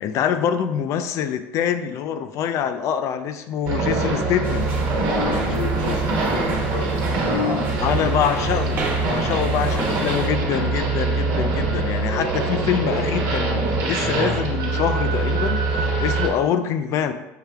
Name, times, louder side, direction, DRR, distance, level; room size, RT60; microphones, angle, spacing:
voice 1, 0.0-4.7 7.8-15.6 16.0-17.1, left 8 dB, 50° left, 9 dB, 0.4 m, -25 dB
sound 1, 3.7-16.3, right 3 dB, 55° right, 1.1 m, -23 dB
sound 2, 4.4-10.3, right 3 dB, 30° right, 1.2 m, -31 dB
voice 2, 5.2-7.7 8.0-8.3 9.5-9.9, left 5 dB, 75° left, 1 dB, 0.9 m, -32 dB
6.5 x 2.3 x 3.3 m, 0.95 s
supercardioid pair, 125°, 6 cm